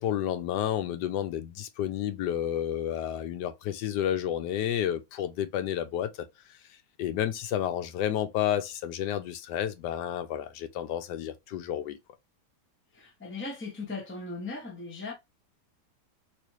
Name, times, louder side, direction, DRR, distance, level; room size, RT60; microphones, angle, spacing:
voice 1, 0.0-6.1 7.0-12.0, left 10 dB, 85° left, 1.3 m, -30 dB
voice 2, 12.9-15.1, left 3 dB, 10° left, 0.7 m, -38 dB
3.1 x 3.0 x 3.0 m
omnidirectional pair, 1.8 m